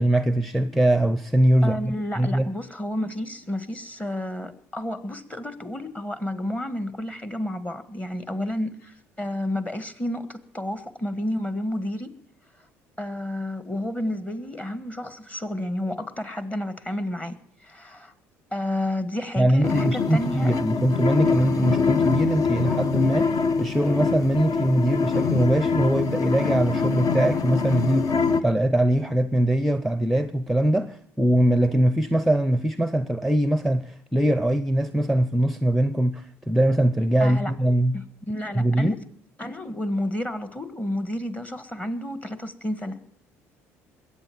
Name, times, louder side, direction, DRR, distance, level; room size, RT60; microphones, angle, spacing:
voice 1, 0.0-2.5 19.4-37.9 38.5-38.9, right 1 dB, ahead, 0.7 m, -22 dB
voice 2, 1.6-12.2 13.0-18.1 18.5-20.5 37.2-37.5 37.9-39.0 39.4-43.0, left 1 dB, 20° left, 1.6 m, -31 dB
sound 1, 19.6-28.4, left 5 dB, 50° left, 1.0 m, -24 dB
21.5 x 8.5 x 7.3 m
hypercardioid pair, 65°, 7 cm